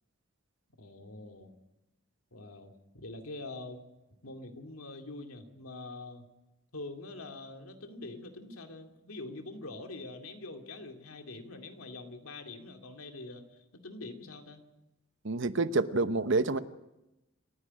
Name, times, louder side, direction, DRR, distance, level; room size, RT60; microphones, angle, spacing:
voice 1, 0.8-1.5 2.3-3.8 4.2-6.3 6.7-14.6, left 2 dB, 85° left, 5 dB, 2.5 m, -44 dB
voice 2, 15.2-16.6, right 3 dB, 60° right, 12 dB, 0.9 m, -28 dB
28.0 x 10.0 x 10.0 m, 0.97 s
head